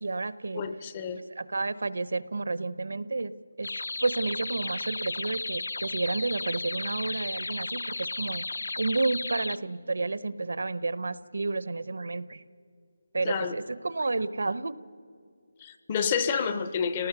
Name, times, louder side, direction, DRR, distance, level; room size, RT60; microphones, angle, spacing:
voice 1, 0.0-0.6 1.4-3.3 3.6-3.7 4.0-8.4 8.8-12.4 13.1-14.7, right 3 dB, 65° right, 17 dB, 0.7 m, -30 dB
voice 2, 0.5-1.2 13.2-13.5 15.6-17.1, left 6 dB, 15° left, 11 dB, 0.5 m, -29 dB
sound 1, 3.6-9.6, left 2 dB, 80° left, 0.6 m, -34 dB
28.5 x 19.0 x 6.8 m, 2.3 s
figure-of-eight pair, 180°, 0 cm